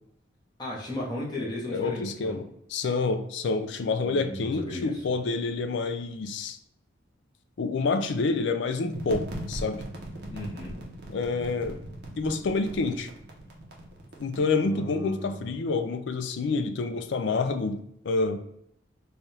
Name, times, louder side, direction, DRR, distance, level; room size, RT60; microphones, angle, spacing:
voice 1, 0.6-2.4 4.0-5.0 10.3-10.8 14.6-15.5, left 1 dB, 20° left, -4 dB, 0.8 m, -35 dB
voice 2, 1.4-2.5 2.7-6.6 7.6-9.8 11.1-11.8 12.2-13.1 14.2-17.8 18.0-18.4, left 3 dB, 60° left, 7 dB, 0.4 m, -28 dB
sound 1, 8.9-14.4, right 1 dB, 55° right, 0.7 m, -39 dB
3.4 x 2.3 x 4.0 m, 0.76 s
head